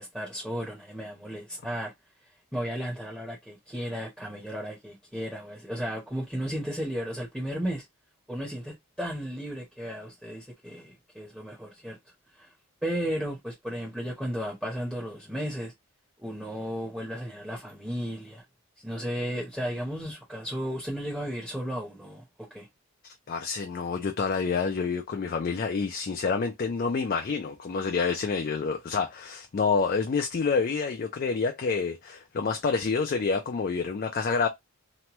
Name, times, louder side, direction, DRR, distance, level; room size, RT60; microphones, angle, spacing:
voice 1, 0.0-1.9 2.5-7.8 8.3-12.0 12.4-12.5 12.8-15.7 16.2-18.4 18.8-22.2 22.5-22.7, equal, 5° right, 0.7 m, -34 dB
voice 2, 23.3-34.5, left 5 dB, 40° left, 0.3 m, -28 dB
3.0 x 2.2 x 2.9 m
head